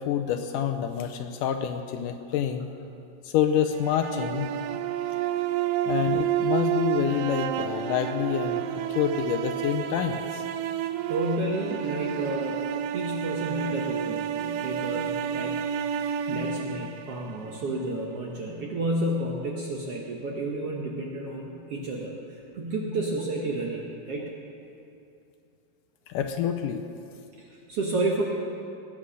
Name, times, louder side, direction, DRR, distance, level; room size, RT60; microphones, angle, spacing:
voice 1, 0.0-2.7 3.2-4.5 5.9-8.7 8.9-10.4 26.1-26.8, left 9 dB, 80° left, 7 dB, 2.1 m, -27 dB
sound 1, 3.7-17.8, right 10 dB, 80° right, 2.0 m, -30 dB
voice 2, 11.1-12.6 12.9-15.6 16.0-24.3 27.4-28.2, right 1 dB, 60° right, -2 dB, 1.6 m, -31 dB
20.0 x 9.0 x 6.3 m, 2.6 s
omnidirectional pair, 4.1 m